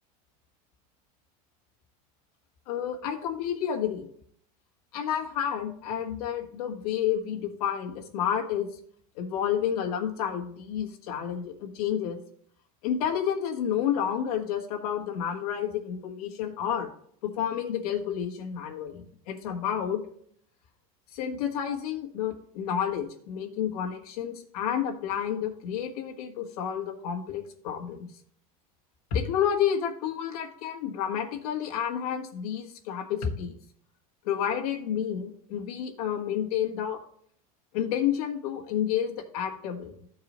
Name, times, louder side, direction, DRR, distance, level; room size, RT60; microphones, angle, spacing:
voice 1, 2.7-4.1 4.9-8.7 9.1-12.2 12.8-16.9 17.2-20.0 21.1-28.1 29.1-33.6 34.2-37.0 37.7-40.0, left 9 dB, 80° left, 1 dB, 1.5 m, -30 dB
13.0 x 4.7 x 3.0 m, 0.64 s
supercardioid pair, 130°, 19 cm